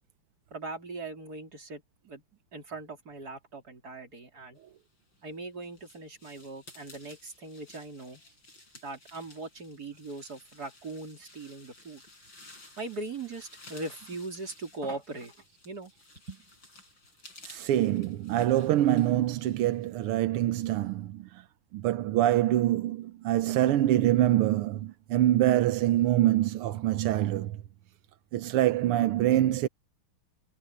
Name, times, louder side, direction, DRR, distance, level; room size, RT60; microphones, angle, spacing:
voice 1, 0.5-2.2 2.5-4.6 5.2-8.2 8.8-12.0 12.8-15.3 15.6-15.9 16.3-16.4, right 3 dB, 45° right, 3.9 m, -40 dB
sound 1, 5.0-20.2, left 2 dB, 60° left, 8.3 m, -55 dB
voice 2, 17.4-21.3 21.7-27.6 28.3-29.7, right 13 dB, 90° right, 1.8 m, -25 dB
omnidirectional pair, 2.4 m